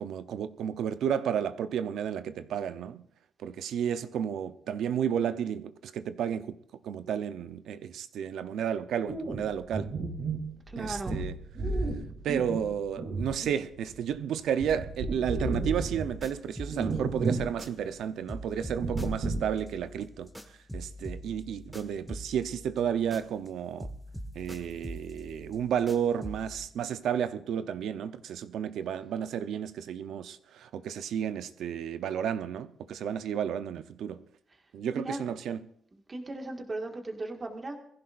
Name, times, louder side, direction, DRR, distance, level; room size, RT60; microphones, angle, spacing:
voice 1, 0.0-3.0 3.4-6.6 6.8-9.9 10.8-11.4 12.2-20.3 20.7-23.9 24.3-34.2 34.7-35.7, right 8 dB, 80° right, 0.8 m, -32 dB
sound 1, 9.0-14.1 14.4-16.2 16.7-17.6 17.8-17.9 18.7-19.6, right 3 dB, 55° right, 3.6 m, -33 dB
voice 2, 10.7-11.2 34.9-35.2 36.1-37.8, right 2 dB, 25° right, 2.0 m, -37 dB
sound 2, 15.5-18.0 18.3-23.5 23.8-26.6, equal, 5° right, 1.5 m, -44 dB
22.0 x 15.5 x 2.6 m
cardioid pair, 125°, 0 cm